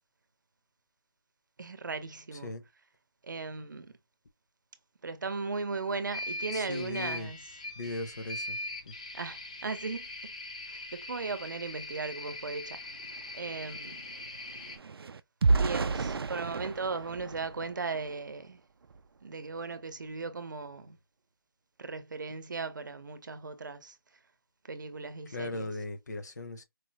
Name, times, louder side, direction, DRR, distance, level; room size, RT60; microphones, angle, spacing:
voice 1, 1.6-2.5 3.2-3.9 5.0-7.4 9.1-10.3 10.7-12.8 13.3-14.1 15.5-18.6 19.2-21.0 21.8-24.0 24.6-25.7, right 4 dB, 55° right, 0.8 m, -37 dB
sound 1, 6.1-14.8, left 2 dB, 20° left, 0.5 m, -41 dB
voice 2, 6.5-7.3 7.8-8.6 8.9-9.0 25.3-26.6, left 2 dB, 45° left, 0.8 m, -38 dB
sound 2, 12.4-12.5 12.8-18.3 18.8-19.0 19.4-19.6, right 3 dB, 90° right, 0.5 m, -32 dB
4.7 x 2.0 x 2.9 m
hypercardioid pair, 175°, 12 cm